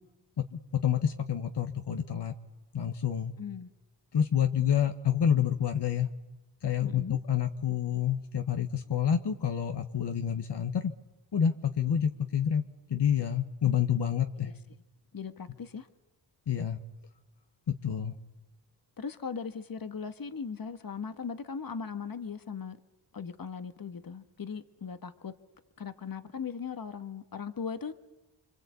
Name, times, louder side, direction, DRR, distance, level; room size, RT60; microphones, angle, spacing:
voice 1, 0.4-2.3 2.7-3.3 4.1-6.1 6.6-10.9 11.3-12.6 12.9-14.5 16.5-16.8 17.7-18.1, left 9 dB, 70° left, 1.5 m, -28 dB
voice 2, 3.4-3.7 6.8-7.2 14.4-14.5 15.1-15.9 19.0-22.8 23.1-25.4 25.8-27.9, left 6 dB, 55° left, 1.6 m, -38 dB
25.5 x 25.0 x 8.4 m
cardioid pair, 55°, 43 cm